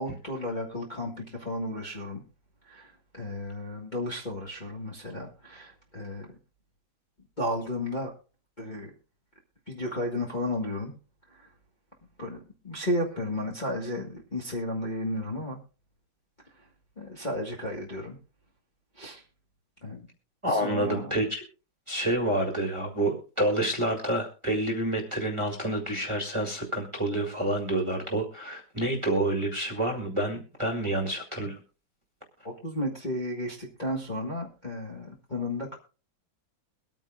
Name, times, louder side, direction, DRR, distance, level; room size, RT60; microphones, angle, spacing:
voice 1, 0.0-2.2 2.6-6.4 7.4-8.1 8.6-8.9 9.7-10.9 11.3-11.5 12.2-15.6 16.4-16.7 17.0-18.2 18.9-19.2 19.8-20.1 20.5-21.1 32.4-35.8, left 1 dB, 25° left, -3 dB, 1.5 m, -33 dB
voice 2, 20.4-21.4 21.9-31.5, right 1 dB, 15° right, 0 dB, 1.7 m, -28 dB
23.0 x 9.0 x 2.4 m, 0.36 s
omnidirectional pair, 2.4 m